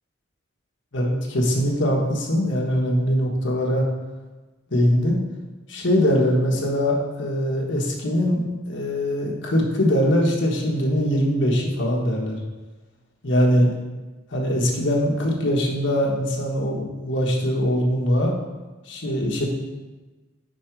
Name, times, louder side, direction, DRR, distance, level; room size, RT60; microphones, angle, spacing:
voice 1, 0.9-3.8 4.7-5.2 5.7-12.4 13.2-13.7 14.3-18.3 18.9-19.4, equal, 70° left, -2 dB, 1.3 m, -22 dB
5.2 x 4.9 x 4.6 m, 1.2 s
head